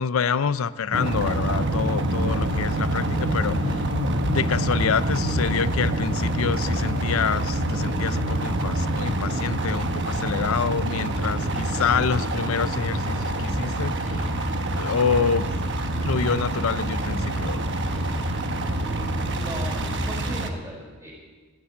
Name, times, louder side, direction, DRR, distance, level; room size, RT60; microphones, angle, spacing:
voice 1, 0.0-14.3 14.7-15.5 16.0-17.7, left 6 dB, 70° left, 15 dB, 0.5 m, -27 dB
sound 1, 0.9-20.5, right 1 dB, 55° right, 1.2 m, -26 dB
voice 2, 18.7-21.1, right 1 dB, 15° right, -4 dB, 5.6 m, -38 dB
16.0 x 8.5 x 8.4 m, 1.4 s
head